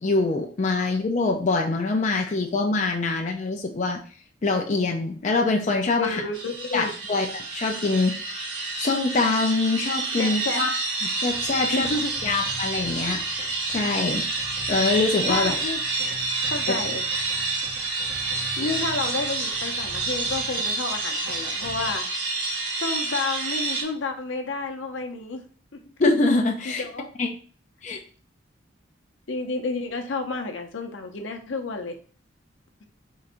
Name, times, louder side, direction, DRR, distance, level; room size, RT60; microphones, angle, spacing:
voice 1, 0.0-4.0 4.4-6.2 6.7-8.1 8.8-10.7 11.0-11.9 12.2-14.2 14.7-15.6 26.0-26.8 27.2-27.3 27.8-28.0, left 3 dB, 40° left, 2 dB, 0.4 m, -24 dB
voice 2, 6.0-6.9 10.2-10.6 11.7-12.1 15.3-15.8 16.4-17.0 18.6-22.0 22.8-25.4 25.7-25.8 26.6-27.1 29.3-32.0, left 3 dB, 75° left, 5 dB, 0.7 m, -30 dB
sound 1, 6.3-23.8, right 3 dB, 90° right, 1.3 m, -28 dB
sound 2, 11.3-22.0, right 1 dB, 50° right, 0.9 m, -44 dB
3.7 x 2.6 x 4.3 m, 0.41 s
head